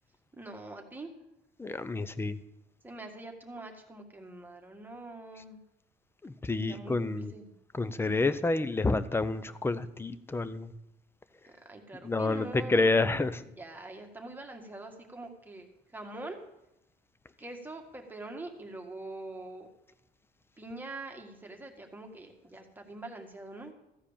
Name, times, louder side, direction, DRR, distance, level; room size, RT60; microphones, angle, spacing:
voice 1, 0.3-1.1 2.8-5.6 6.6-7.5 11.4-13.1 13.5-16.4 17.4-19.7 20.6-23.7, right 2 dB, 10° right, 2 dB, 1.7 m, -44 dB
voice 2, 1.6-2.4 6.2-7.3 7.7-10.7 12.0-13.4, left 3 dB, 15° left, 14 dB, 0.6 m, -29 dB
14.5 x 4.9 x 8.6 m, 0.87 s
cardioid pair, 110°, 17 cm